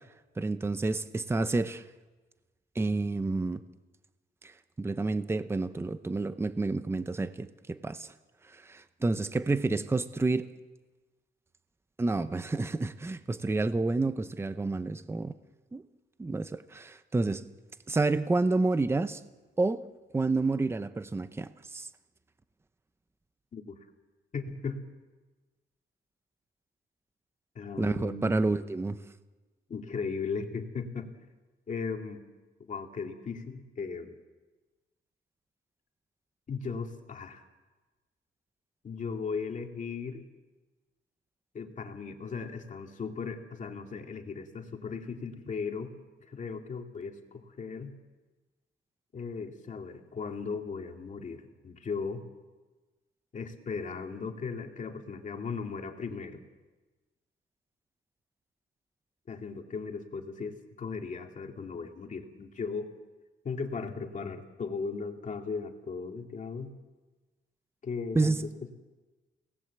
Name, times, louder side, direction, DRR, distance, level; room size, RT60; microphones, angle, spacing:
voice 1, 0.4-1.8 2.8-3.6 4.4-4.5 4.8-8.1 8.5-10.5 12.0-15.3 15.7-15.8 16.2-17.5 17.9-19.2 19.6-19.8 20.1-21.9 27.8-29.0 68.1-68.4, right 3 dB, 10° right, 12 dB, 0.7 m, -29 dB
voice 2, 24.3-24.8 27.6-28.3 29.7-31.1 31.7-32.2 32.6-34.2 36.5-37.4 38.8-40.2 41.5-45.9 46.3-47.9 49.1-52.2 53.3-56.4 59.3-62.9 63.4-66.7 67.8-68.7, left 5 dB, 40° left, 3 dB, 2.3 m, -37 dB
29.5 x 18.5 x 8.0 m, 1.2 s
wide cardioid pair, 165°, 20 cm